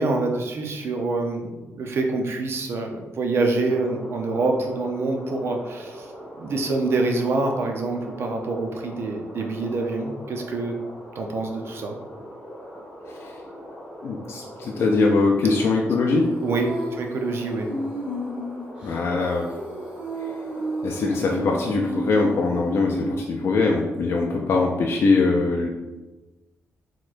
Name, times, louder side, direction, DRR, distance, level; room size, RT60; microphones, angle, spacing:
voice 1, 0.0-6.1 6.4-10.8 11.1-12.0 16.4-17.7, right 3 dB, 60° right, 3 dB, 0.6 m, -26 dB
sound 1, 3.7-21.8, equal, 15° left, 1.4 m, -41 dB
voice 2, 13.1-13.4 14.0-16.3 18.8-19.5 20.8-25.7, left 3 dB, 60° left, 0 dB, 0.4 m, -22 dB
Female singing, 16.2-23.9, right 1 dB, 25° right, 1.3 m, -33 dB
4.2 x 2.9 x 2.5 m, 1.1 s
cardioid pair, 100°, 5 cm